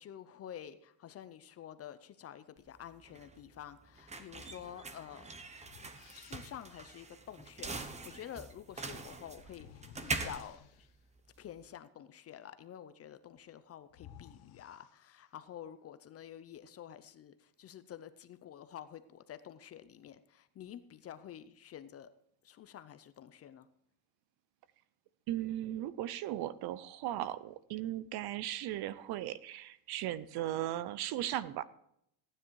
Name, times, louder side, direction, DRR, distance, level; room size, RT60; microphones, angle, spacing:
voice 1, 0.0-5.3 6.1-10.9 11.4-22.1 22.4-23.7, left 10 dB, 30° left, 12 dB, 0.6 m, -49 dB
sound 1, 2.6-11.6, right 3 dB, 15° right, 0.8 m, -43 dB
sound 2, 5.6-6.8 9.5-11.1 13.4-13.5 13.9-15.5, left 10 dB, 85° left, 1.4 m, -58 dB
voice 2, 25.3-31.6, right 13 dB, 55° right, 17 dB, 0.7 m, -37 dB
15.0 x 9.8 x 4.6 m, 0.74 s
cardioid pair, 170°, 48 cm